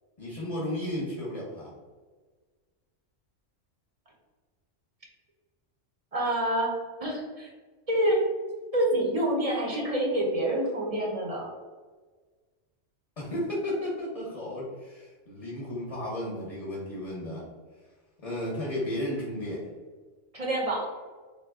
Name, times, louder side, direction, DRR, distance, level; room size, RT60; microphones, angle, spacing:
voice 1, 0.2-1.7 13.2-17.5 18.2-19.6, left 1 dB, 35° left, -6 dB, 0.7 m, -33 dB
voice 2, 6.1-6.8 7.0-7.5 7.9-8.2 8.7-11.5 20.3-20.9, right 1 dB, 40° right, -2 dB, 0.6 m, -27 dB
3.6 x 2.1 x 3.4 m, 1.4 s
omnidirectional pair, 1.3 m